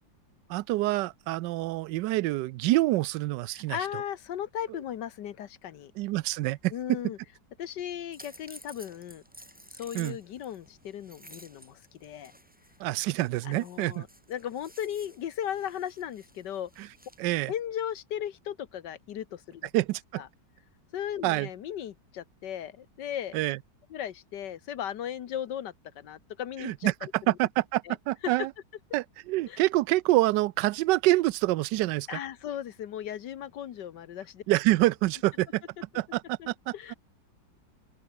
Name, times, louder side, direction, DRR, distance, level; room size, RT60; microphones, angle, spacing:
voice 1, 0.5-3.8 6.0-6.7 7.0-7.1 9.9-10.2 12.8-14.0 16.8-16.9 17.2-17.5 19.7-20.2 21.2-21.5 23.3-23.6 26.6-28.5 28.9-32.2 34.5-35.6 35.9-36.7, right 18 dB, 75° right, 1.2 m, -26 dB
voice 2, 3.5-5.9 6.7-7.2 7.6-9.2 9.8-12.3 13.4-16.9 17.5-19.7 20.2-20.3 20.9-23.4 23.9-26.9 27.8-28.0 28.2-28.3 29.4-29.6 32.1-34.4 36.4-36.5 36.7-36.9, left 10 dB, 70° left, 1.6 m, -36 dB
sound 1, 8.1-17.3, equal, 5° right, 4.6 m, -53 dB
open air
omnidirectional pair, 2.0 m